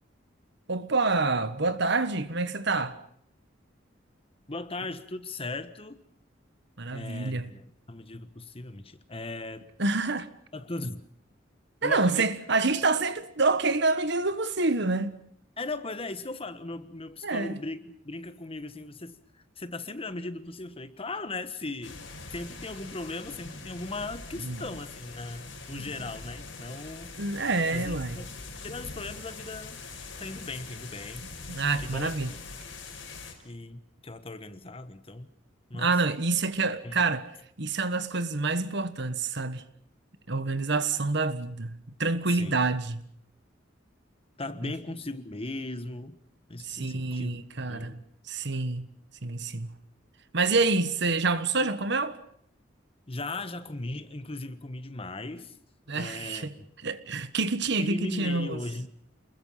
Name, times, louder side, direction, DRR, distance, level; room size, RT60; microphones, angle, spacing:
voice 1, 0.7-3.0 6.8-7.5 9.8-10.3 11.8-15.2 17.2-17.6 24.4-24.6 25.7-25.8 27.2-28.2 31.5-32.3 35.7-37.3 37.6-39.6 40.3-43.0 44.6-44.7 46.6-48.0 48.3-48.9 49.2-49.8 50.3-52.2 55.9-56.5 56.8-58.6, right 3 dB, 65° right, 1.5 m, -27 dB
voice 2, 4.5-6.0 6.9-9.7 10.5-11.0 11.8-12.3 15.6-22.0 22.3-27.1 27.7-28.3 28.6-29.8 30.2-31.2 31.8-32.1 33.4-35.3 35.7-35.9 36.8-37.0 42.3-42.6 44.4-46.2 46.5-48.0 53.1-55.6 55.9-56.7 57.8-58.9, left 2 dB, 30° left, 1.3 m, -38 dB
sound 1, 21.8-33.3, left 3 dB, 75° left, 5.4 m, -43 dB
28.0 x 21.0 x 5.8 m
head